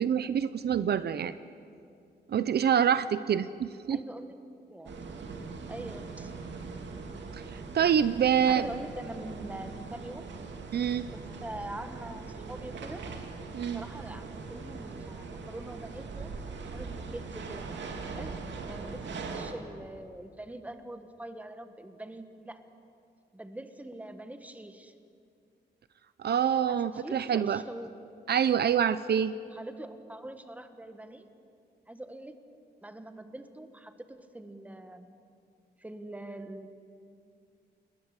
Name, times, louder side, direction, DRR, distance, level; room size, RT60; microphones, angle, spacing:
voice 1, 0.0-1.4 2.3-4.0 7.3-8.7 10.7-11.1 13.5-13.8 26.2-27.6 28.3-29.3, right 8 dB, 65° right, 14 dB, 0.7 m, -26 dB
voice 2, 3.9-4.4 4.7-5.0 5.7-6.3 8.5-10.3 11.1-13.0 13.7-16.3 16.7-17.7 18.0-18.4 18.6-19.0 19.3-22.6 23.3-24.9 26.7-27.9 29.5-31.3 31.9-32.4 32.8-35.1 35.8-36.7, right 1 dB, 10° right, 8 dB, 1.4 m, -43 dB
sound 1, 4.8-19.5, right 4 dB, 85° right, 2.5 m, -41 dB
29.0 x 20.5 x 8.1 m, 2.4 s
wide cardioid pair, 170°, 18 cm